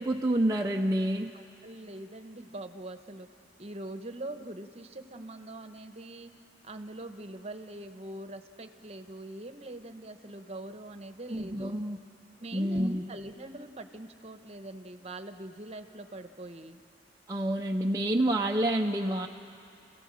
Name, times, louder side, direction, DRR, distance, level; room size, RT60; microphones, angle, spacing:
voice 1, 0.0-1.3 11.3-12.0 12.5-13.0 17.3-19.3, right 1 dB, 20° right, 0 dB, 0.6 m, -28 dB
voice 2, 1.6-3.3 3.6-6.3 6.6-11.7 12.4-16.8, right 1 dB, 35° right, 8 dB, 1.0 m, -43 dB
29.5 x 15.5 x 7.6 m, 2.6 s
head